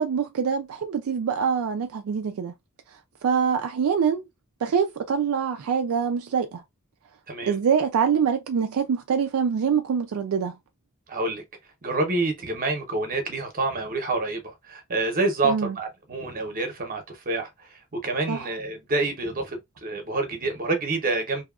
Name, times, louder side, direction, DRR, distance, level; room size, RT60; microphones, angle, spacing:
voice 1, 0.0-2.5 3.2-4.2 4.6-6.6 7.5-10.6 15.4-15.7 18.3-18.5, right 6 dB, 70° right, 0.4 m, -24 dB
voice 2, 7.3-7.6 11.1-11.4 11.8-21.4, right 3 dB, 40° right, 0.8 m, -28 dB
2.7 x 2.3 x 2.3 m
head